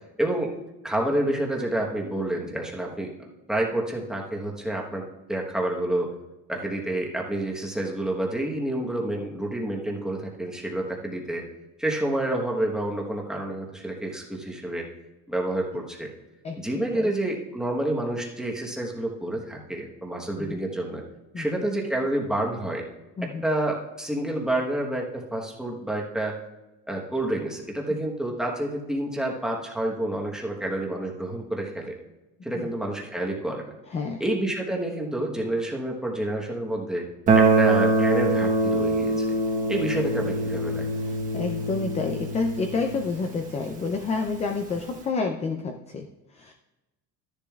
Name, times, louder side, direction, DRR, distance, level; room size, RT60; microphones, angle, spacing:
voice 1, 0.2-0.5 0.8-3.1 3.5-6.1 6.5-11.4 11.8-14.9 15.3-16.1 16.6-21.0 21.4-22.9 23.2-26.4 26.9-32.0 32.4-33.7 34.2-37.1 37.4-39.2 39.7-40.9, right 1 dB, ahead, -1 dB, 1.1 m, -28 dB
voice 2, 16.4-17.1 20.4-20.6 21.3-21.6 23.2-23.4 27.9-28.0 32.6-32.7 33.9-34.2 41.0-46.5, left 4 dB, 20° left, 5 dB, 0.4 m, -29 dB
Guitar, 37.3-44.0, right 2 dB, 25° right, 1.1 m, -24 dB
13.0 x 10.5 x 2.4 m, 1.1 s
cardioid pair, 170°, 32 cm